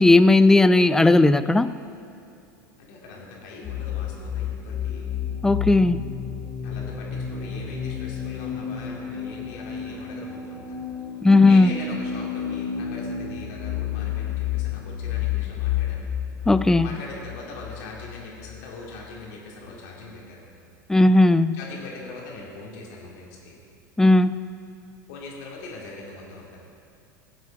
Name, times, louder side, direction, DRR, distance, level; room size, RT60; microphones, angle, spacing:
voice 1, 0.0-1.7 5.4-6.0 11.2-11.7 16.5-16.9 20.9-21.6 24.0-24.4, left 2 dB, 5° left, 13 dB, 0.3 m, -16 dB
voice 2, 2.8-5.2 6.6-10.8 11.4-16.1 16.8-20.5 21.5-23.6 25.1-26.6, left 3 dB, 60° left, -3 dB, 2.8 m, -41 dB
sound 1, 3.6-19.2, left 8 dB, 30° left, 2.5 m, -31 dB
18.0 x 7.6 x 3.6 m, 2.6 s
hypercardioid pair, 85°, 11 cm